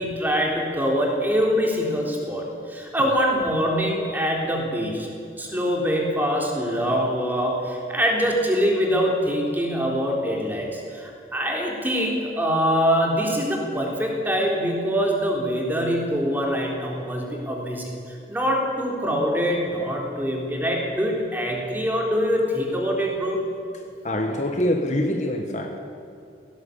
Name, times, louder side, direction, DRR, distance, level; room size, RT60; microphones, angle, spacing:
voice 1, 0.0-5.1 5.4-23.4, equal, 10° right, -1 dB, 3.6 m, -24 dB
voice 2, 24.0-25.8, left 1 dB, 40° left, 4 dB, 1.5 m, -25 dB
18.0 x 17.0 x 8.5 m, 2.5 s
head